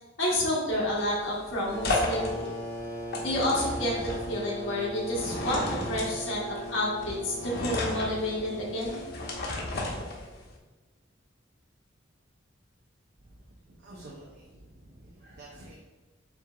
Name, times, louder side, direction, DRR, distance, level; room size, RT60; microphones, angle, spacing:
voice 1, 0.2-2.4 3.2-9.0, left 1 dB, 90° left, -5 dB, 1.2 m, -29 dB
sound 1, 0.7-10.6, left 2 dB, 55° left, 0.8 m, -34 dB
sound 2, 1.7-10.1, right 1 dB, 15° left, 0.5 m, -39 dB
voice 2, 13.8-15.8, right 1 dB, 55° right, -4 dB, 0.7 m, -49 dB
6.9 x 2.9 x 2.4 m, 1.2 s
head